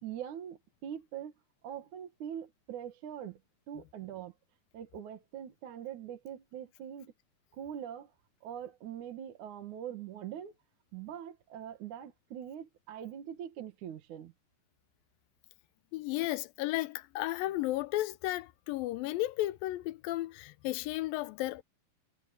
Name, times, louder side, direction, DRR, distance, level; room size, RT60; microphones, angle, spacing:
voice 1, 0.0-1.3 1.6-3.4 3.7-4.3 4.7-7.1 7.5-8.1 8.4-10.5 10.9-14.3, right 10 dB, 60° right, 2.8 m, -43 dB
voice 2, 15.9-21.6, left 16 dB, 85° left, 2.4 m, -34 dB
omnidirectional pair, 4.2 m